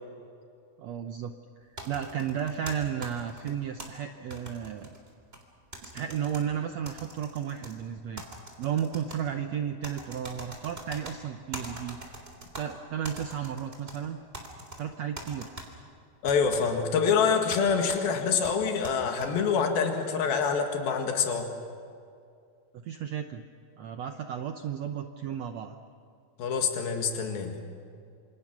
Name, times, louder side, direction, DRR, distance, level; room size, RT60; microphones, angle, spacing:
voice 1, 0.8-1.3 1.6-4.9 5.8-8.2 8.6-12.1 12.6-14.2 14.8-15.5 22.7-23.4 23.8-25.8, right 8 dB, 75° right, 6 dB, 1.6 m, -33 dB
sound 1, 1.8-3.9 4.3-5.4 5.7-6.4 6.9-7.7 8.2-9.2 9.8-11.1 11.5-12.6 13.0-14.0 14.3-14.8 15.2-15.7 16.3-16.6 17.5-17.6 17.9-18.0 18.4-19.3, right 1 dB, 15° right, 3.5 m, -42 dB
voice 2, 16.2-21.5 26.4-27.6, left 6 dB, 80° left, 3 dB, 3.8 m, -26 dB
28.0 x 27.5 x 6.2 m, 2.4 s
omnidirectional pair, 4.1 m